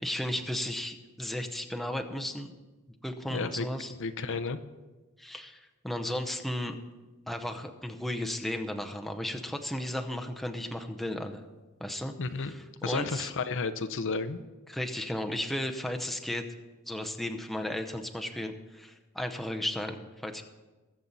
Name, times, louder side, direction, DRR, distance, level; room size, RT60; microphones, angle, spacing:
voice 1, 0.0-2.5 3.0-3.9 5.2-5.6 5.8-6.7 7.3-11.4 11.8-13.3 14.7-16.4 16.9-20.4, left 1 dB, ahead, 4 dB, 0.7 m, -34 dB
voice 2, 3.3-3.7 4.0-4.6 12.2-12.5 12.8-14.4, left 4 dB, 60° left, 11 dB, 0.7 m, -32 dB
21.0 x 7.4 x 4.1 m, 1.2 s
head